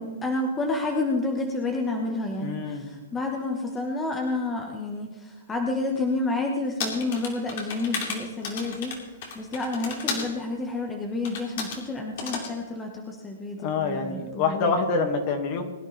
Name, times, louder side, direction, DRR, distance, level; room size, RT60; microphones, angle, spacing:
voice 1, 0.0-8.9 9.3-14.8, left 2 dB, 15° left, 2 dB, 1.3 m, -29 dB
voice 2, 2.4-2.9 13.6-15.6, left 4 dB, 40° left, 5 dB, 2.0 m, -26 dB
sound 1, 6.8-10.3 11.2-11.8 12.2-12.5, left 5 dB, 55° left, 2.7 m, -33 dB
21.5 x 10.0 x 3.4 m, 1.2 s
hypercardioid pair, 135°, 0 cm